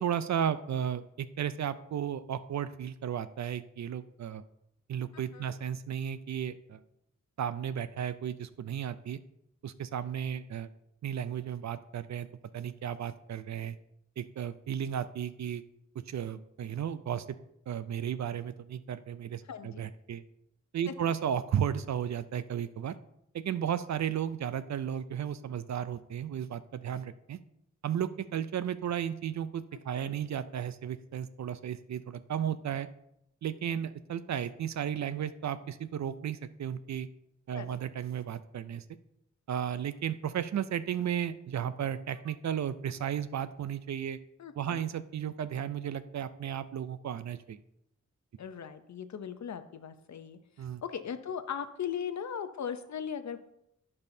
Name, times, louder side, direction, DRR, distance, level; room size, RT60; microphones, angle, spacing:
voice 1, 0.0-4.4 4.9-6.8 7.4-9.2 9.6-10.7 11.0-12.3 12.5-13.8 14.2-15.6 16.1-17.3 17.7-20.2 20.7-22.9 23.3-27.4 27.8-32.9 33.4-37.1 37.5-38.8 39.5-44.2 44.6-47.6 50.6-50.8, right 9 dB, 65° right, 14 dB, 0.4 m, -34 dB
voice 2, 5.1-5.5 19.4-19.8 20.9-21.1 29.7-30.1 37.5-37.8 44.4-44.8 48.4-53.4, left 8 dB, 65° left, 10 dB, 0.6 m, -39 dB
14.5 x 5.5 x 2.7 m, 0.80 s
wide cardioid pair, 160°, 30 cm